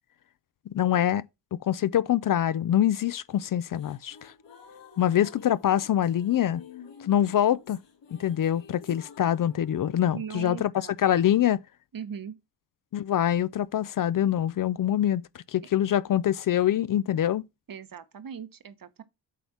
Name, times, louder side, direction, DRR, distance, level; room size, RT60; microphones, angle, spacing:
voice 1, 0.7-1.2 1.5-4.3 5.0-6.6 7.0-7.8 8.2-10.7 11.0-11.6 12.9-17.4, left 11 dB, 50° left, 0.5 m, -25 dB
sound 1, 3.3-10.5, left 6 dB, 75° left, 2.7 m, -51 dB
voice 2, 10.1-10.9 11.9-12.4 17.7-19.0, right 7 dB, 50° right, 1.1 m, -39 dB
8.4 x 3.4 x 5.8 m
cardioid pair, 65°, 43 cm